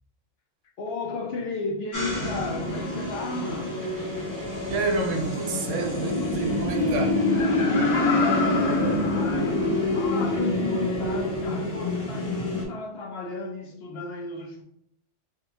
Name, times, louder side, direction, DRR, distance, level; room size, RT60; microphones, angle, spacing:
voice 1, 0.8-3.8 4.2-4.3 8.0-14.6, left 3 dB, 65° left, 0.7 m, -33 dB
sound 1, 1.9-12.6, left 2 dB, 20° left, 0.7 m, -26 dB
Snare drum, 2.1-5.8, left 1 dB, 45° right, 1.1 m, -45 dB
voice 2, 4.7-7.2, right 3 dB, 75° right, 0.9 m, -28 dB
Laughter, 7.2-9.8 10.3-10.4, left 3 dB, 80° left, 1.3 m, -30 dB
3.4 x 2.4 x 2.9 m
omnidirectional pair, 1.3 m